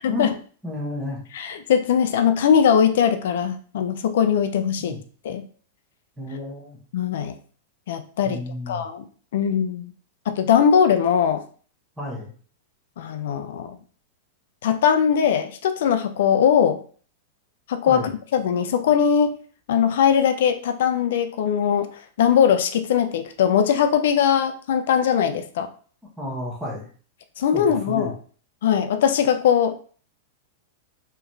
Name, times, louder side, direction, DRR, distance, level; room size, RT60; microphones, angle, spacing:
voice 1, 0.0-0.3 1.3-5.0 5.2-5.4 6.9-7.3 7.9-8.4 8.7-9.0 9.3-9.9 10.3-11.4 13.0-13.8 14.6-16.8 17.7-18.0 18.3-19.3 19.7-21.9 22.2-25.7 27.4-28.1 28.6-29.8, left 8 dB, 65° left, 8 dB, 0.4 m, -20 dB
voice 2, 0.6-1.2 4.8-5.0 6.2-6.8 8.2-8.8 12.0-12.3 17.9-18.1 26.2-26.9 27.5-28.1, left 1 dB, 5° right, -3 dB, 0.9 m, -31 dB
3.9 x 3.1 x 2.7 m, 0.43 s
supercardioid pair, 170°, 0 cm